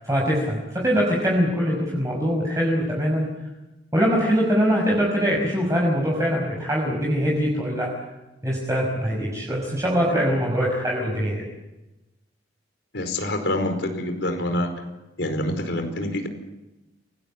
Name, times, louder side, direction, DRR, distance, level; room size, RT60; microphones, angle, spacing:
voice 1, 0.0-3.3 3.9-7.9 8.4-11.4, equal, 15° right, -3 dB, 5.6 m, -23 dB
voice 2, 12.9-14.7 15.2-16.3, left 1 dB, 75° left, 5 dB, 4.8 m, -26 dB
29.5 x 20.0 x 8.7 m, 1.0 s
head